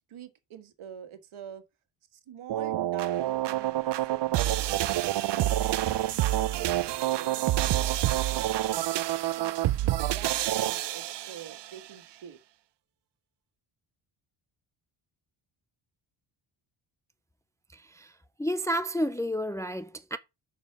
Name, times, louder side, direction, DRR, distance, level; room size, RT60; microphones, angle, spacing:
voice 1, 0.1-1.6 2.1-4.8 5.3-9.0 9.3-12.4, right 8 dB, 70° right, 1.6 m, -46 dB
sound 1, 2.5-11.7, right 14 dB, 55° right, 0.6 m, -27 dB
voice 2, 17.7-20.2, equal, 5° left, 0.4 m, -31 dB
6.6 x 5.2 x 5.3 m
cardioid pair, 110°, 50 cm